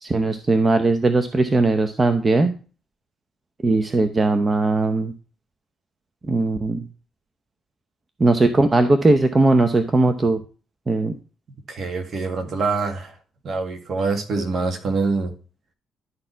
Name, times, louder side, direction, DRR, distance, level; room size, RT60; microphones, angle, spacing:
voice 1, 0.0-2.5 3.6-5.1 6.3-6.8 8.2-10.4 10.9-11.2, right 2 dB, 30° right, 0.7 m, -19 dB
voice 2, 11.7-13.2 13.4-15.3, right 4 dB, 55° right, 1.8 m, -25 dB
11.0 x 4.3 x 4.5 m
cardioid pair, 90°, 0 cm